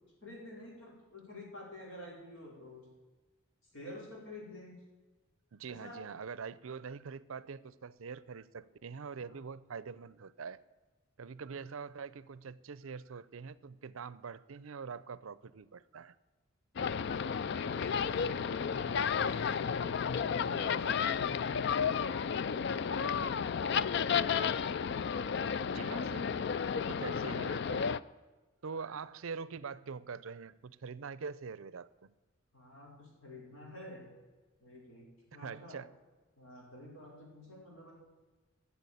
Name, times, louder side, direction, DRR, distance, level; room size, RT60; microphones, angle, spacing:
voice 1, 0.2-2.9 3.7-4.7 5.7-6.0 9.3-9.4 11.5-11.6 17.3-19.9 20.4-23.4 32.5-34.0 34.6-35.8 36.4-37.9, left 1 dB, 70° left, -2 dB, 5.1 m, -50 dB
voice 2, 5.5-10.6 11.2-16.2 25.6-26.5 26.9-27.9 28.6-32.1 35.4-35.9, right 5 dB, 75° right, 18 dB, 0.5 m, -44 dB
sound 1, 16.8-28.0, left 6 dB, 55° left, 0.4 m, -32 dB
13.5 x 7.2 x 8.4 m, 1.2 s
head